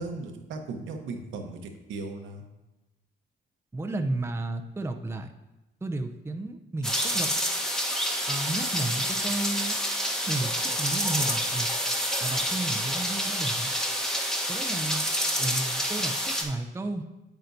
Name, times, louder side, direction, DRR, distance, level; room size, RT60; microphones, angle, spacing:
voice 1, 0.0-2.4, right 3 dB, 80° right, 3 dB, 1.0 m, -37 dB
voice 2, 3.7-5.3 5.8-7.3 8.3-9.8 10.3-11.7 12.2-13.7 14.5-15.1 15.4-17.1, right 2 dB, 10° right, 5 dB, 0.5 m, -33 dB
sound 1, 6.8-16.4, equal, 5° left, 1.1 m, -28 dB
8.7 x 8.1 x 2.6 m, 1.0 s
cardioid pair, 90°, 20 cm